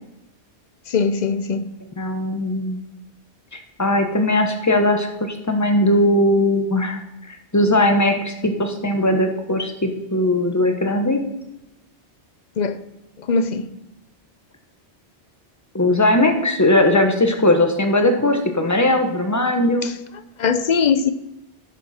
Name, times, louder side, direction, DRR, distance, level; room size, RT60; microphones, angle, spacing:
voice 1, 0.9-1.7 12.6-12.8 13.2-13.7 19.8-20.0 20.4-21.1, left 5 dB, 50° left, 0.7 m, -21 dB
voice 2, 2.0-2.8 3.8-7.0 7.3-11.2 15.7-19.9, left 1 dB, 15° left, 1.1 m, -19 dB
11.0 x 8.3 x 4.3 m
omnidirectional pair, 1.2 m